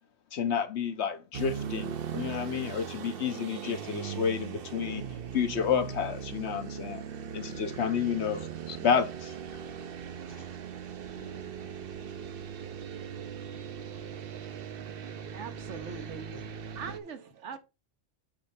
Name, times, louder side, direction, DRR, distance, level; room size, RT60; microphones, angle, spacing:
voice 1, 0.3-5.1 5.3-7.0 7.3-9.3, left 7 dB, 65° left, 1.1 m, -30 dB
sound 1, 1.3-17.0, right 7 dB, 55° right, 0.8 m, -39 dB
voice 2, 10.2-10.6 11.1-11.9 15.6-16.4, left 1 dB, 25° left, 0.8 m, -53 dB
voice 3, 15.3-16.3 16.7-17.6, right 6 dB, 70° right, 1.3 m, -41 dB
8.8 x 3.2 x 5.6 m
omnidirectional pair, 1.2 m